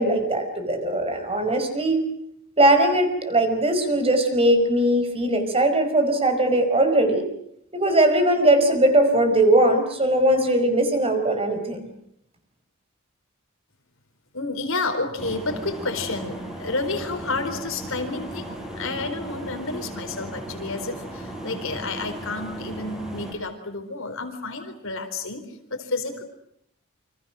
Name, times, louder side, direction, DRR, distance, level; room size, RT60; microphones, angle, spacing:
voice 1, 0.0-2.0 2.6-7.2 7.7-11.8, right 1 dB, 25° right, 6 dB, 5.2 m, -20 dB
voice 2, 14.3-25.4 25.7-26.2, left 3 dB, 65° left, 7 dB, 4.2 m, -30 dB
sound 1, 15.2-23.3, right 1 dB, 5° right, 5.9 m, -36 dB
29.0 x 26.0 x 6.3 m, 0.74 s
head